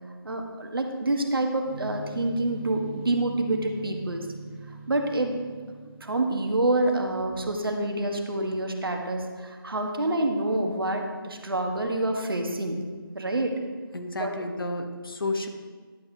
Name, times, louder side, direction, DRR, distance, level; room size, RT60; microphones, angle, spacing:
voice 1, 0.2-4.3 4.9-5.4 6.0-12.8 13.1-13.6 14.2-14.3, right 2 dB, 70° right, 3 dB, 1.3 m, -27 dB
sound 1, 1.7-6.5, right 3 dB, 35° right, 2.4 m, -42 dB
voice 2, 13.9-15.5, left 2 dB, 65° left, 4 dB, 1.1 m, -31 dB
11.0 x 8.1 x 2.8 m, 1.5 s
figure-of-eight pair, 165°, 13 cm